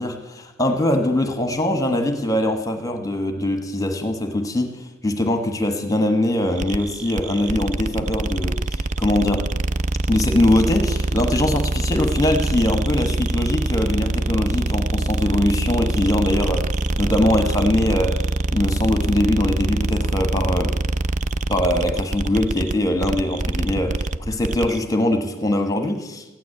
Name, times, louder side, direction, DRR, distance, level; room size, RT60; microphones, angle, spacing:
voice 1, 0.0-9.5 10.1-16.7 17.0-18.2 18.5-20.7 21.5-26.2, left 1 dB, 15° left, 7 dB, 1.1 m, -22 dB
sound 1, 6.6-24.8, right 2 dB, 35° right, 0.5 m, -24 dB
15.0 x 9.4 x 9.7 m, 1.1 s
head